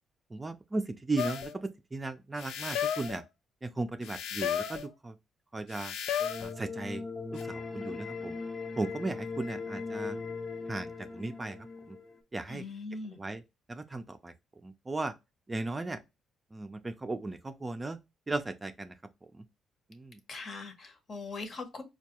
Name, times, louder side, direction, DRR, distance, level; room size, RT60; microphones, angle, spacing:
voice 1, 0.3-3.2 3.6-5.2 5.5-5.9 6.4-7.0 7.4-8.4 8.8-10.2 10.7-11.6 11.9-12.0 12.3-12.6 13.1-13.4 13.7-14.3 14.6-15.1 15.5-16.0 16.5-18.0 18.3-18.9 19.2-19.5 19.9-20.2, right 2 dB, 20° right, 0.4 m, -36 dB
sound 1, 1.2-1.5 2.4-3.2 4.0-4.9 5.7-6.5 7.4-7.5, left 9 dB, 85° left, 0.3 m, -33 dB
sound 2, 6.2-12.2, left 4 dB, 20° left, 0.6 m, -39 dB
voice 2, 12.5-13.2 20.3-21.8, left 3 dB, 45° left, 0.9 m, -41 dB
4.4 x 2.3 x 2.9 m
cardioid pair, 90°, 0 cm